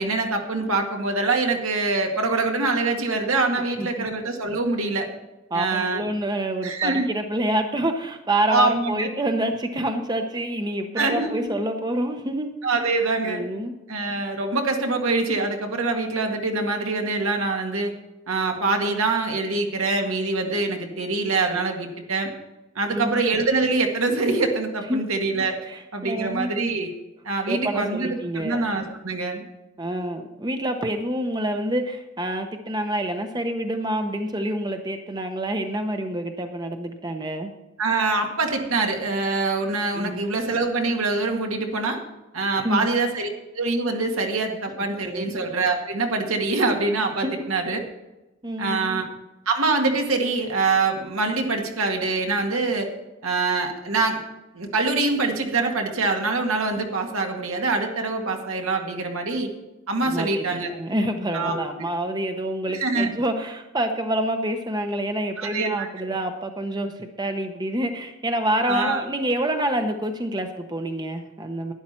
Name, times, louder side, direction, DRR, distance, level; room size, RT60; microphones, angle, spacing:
voice 1, 0.0-5.1 5.5-6.1 6.6-7.1 8.5-9.1 11.0-11.5 12.6-13.5 13.9-17.9 18.3-22.3 22.8-25.6 25.9-26.9 27.2-29.4 37.8-42.0 42.3-43.3 43.5-47.8 48.6-49.1 49.5-52.9 53.2-54.2 54.5-59.5 59.9-60.7 61.3-61.8 62.7-63.1 65.4-65.9 68.7-69.0, right 3 dB, 80° right, 2 dB, 1.9 m, -24 dB
voice 2, 5.5-12.5 13.2-13.7 22.9-23.2 24.9-25.0 25.7-26.5 27.5-28.6 29.8-37.5 39.9-40.3 42.5-42.9 45.0-45.3 47.2-47.3 48.4-49.0 60.0-71.7, right 1 dB, 20° right, 6 dB, 0.8 m, -27 dB
12.0 x 10.5 x 4.4 m, 1.0 s
head